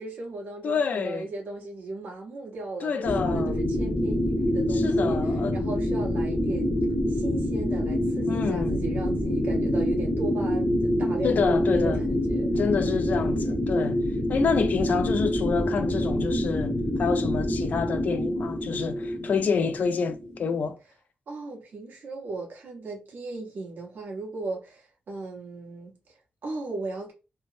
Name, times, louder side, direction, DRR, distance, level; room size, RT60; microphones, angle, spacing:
voice 1, 0.0-5.2 5.5-6.7 7.1-12.5 13.3-13.8 21.3-27.1, right 3 dB, 70° right, 1.1 m, -37 dB
voice 2, 0.6-1.3 2.8-3.5 4.7-5.6 8.3-8.8 11.2-12.0 12.6-20.8, left 5 dB, 55° left, 0.3 m, -28 dB
sound 1, 3.0-20.7, left 1 dB, 25° left, 0.7 m, -26 dB
3.2 x 2.0 x 2.5 m
wide cardioid pair, 155°, 3 cm